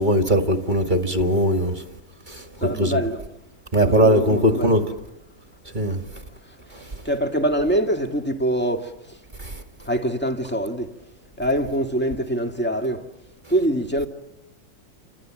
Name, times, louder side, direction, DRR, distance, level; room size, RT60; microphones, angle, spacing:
voice 1, 0.0-1.8 2.3-3.0 3.7-4.8 5.7-6.0 9.4-9.5, equal, 25° right, 1.8 m, -20 dB
voice 2, 2.6-3.2 3.8-4.8 7.0-9.2 9.9-10.9 11.4-13.1 13.5-14.1, right 1 dB, 5° left, 1.6 m, -24 dB
29.5 x 26.0 x 7.6 m
omnidirectional pair, 2.2 m